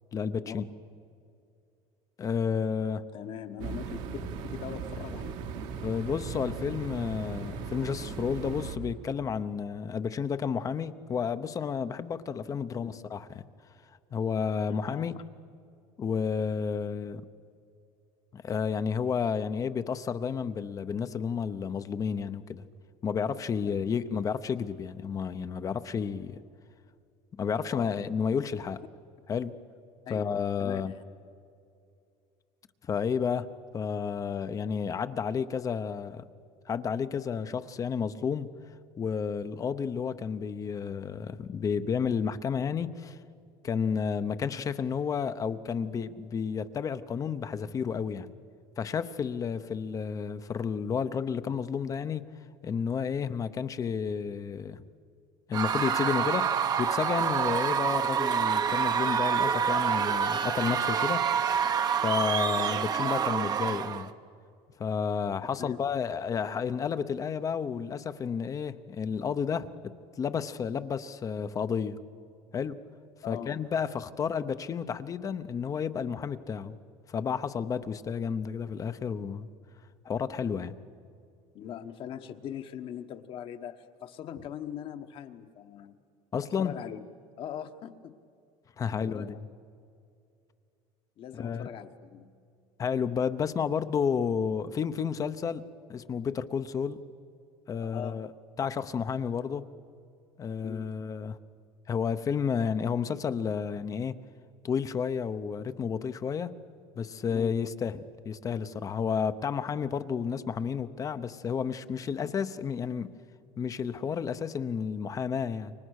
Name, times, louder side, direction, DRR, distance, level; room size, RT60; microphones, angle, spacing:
voice 1, 0.1-0.6 2.2-3.0 5.8-13.4 14.1-15.2 16.0-17.2 18.3-22.6 23.0-26.4 27.4-28.8 29.3-29.5 30.1-30.9 32.9-33.5 33.7-36.2 36.7-38.5 39.0-43.2 43.6-48.3 48.8-52.2 52.6-54.8 55.5-61.2 62.0-64.1 64.8-69.7 70.2-72.0 72.5-72.8 73.3-76.8 77.1-79.5 80.0-80.8 86.3-86.7 88.8-89.4 91.3-91.7 92.8-97.0 97.7-98.3 98.6-99.6 100.4-101.4 101.9-104.2 104.6-106.5 107.0-113.1 113.6-115.7, left 6 dB, 30° left, 12 dB, 0.8 m, -31 dB
voice 2, 3.1-4.1 4.5-5.4 12.8-12.9 14.7-15.1 23.6-24.0 27.7-27.9 30.0-30.3 30.6-30.8 65.6-65.8 73.2-73.5 81.5-86.0 86.6-87.0 87.4-88.1 88.8-89.4 91.2-92.3 97.8-98.2 100.6-100.9 107.3-107.6 112.2-112.3, left 9 dB, 50° left, 8 dB, 1.3 m, -41 dB
sound 1, 3.6-8.8, right 5 dB, 75° right, 2.4 m, -38 dB
Screaming / Cheering / Crowd, 55.5-64.1, right 7 dB, 35° right, 1.0 m, -27 dB
29.0 x 24.0 x 6.5 m, 2.5 s
cardioid pair, 140°, 12 cm